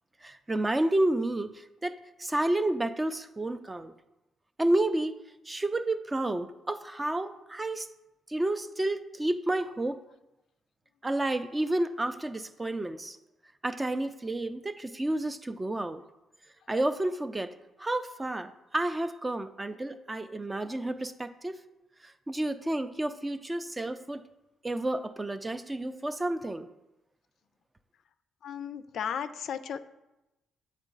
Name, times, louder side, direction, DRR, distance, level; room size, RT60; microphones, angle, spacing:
voice 1, 0.2-3.9 4.6-5.2 5.5-7.9 8.3-10.0 11.0-13.2 13.6-16.0 16.7-17.5 17.8-21.6 22.0-24.2 24.6-26.7, right 1 dB, 15° right, 11 dB, 0.4 m, -30 dB
voice 2, 28.4-29.8, left 8 dB, 70° left, 11 dB, 0.3 m, -35 dB
8.0 x 3.3 x 3.8 m, 0.96 s
cardioid pair, 90°, 0 cm